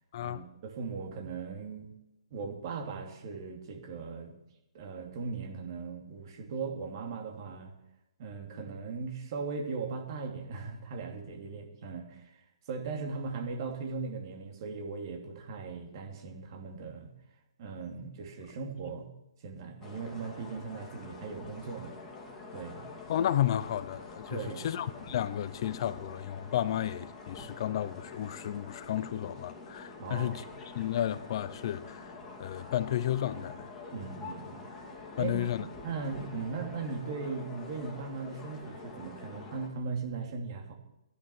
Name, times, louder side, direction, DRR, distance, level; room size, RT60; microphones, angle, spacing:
voice 1, 0.2-1.9 2.3-4.3 4.7-7.7 8.2-12.3 12.7-17.1 17.6-19.1 19.4-21.9 22.5-22.8 24.3-24.7 30.0-30.5 33.9-34.6 35.2-40.7, right 4 dB, 45° right, 2.9 m, -38 dB
sound 1, 19.8-39.7, left 3 dB, 15° left, 2.6 m, -46 dB
voice 2, 23.1-30.5 30.7-32.1 32.4-33.7 35.2-35.6, left 11 dB, 45° left, 0.7 m, -32 dB
15.5 x 10.5 x 5.9 m
hypercardioid pair, 145°, 3 cm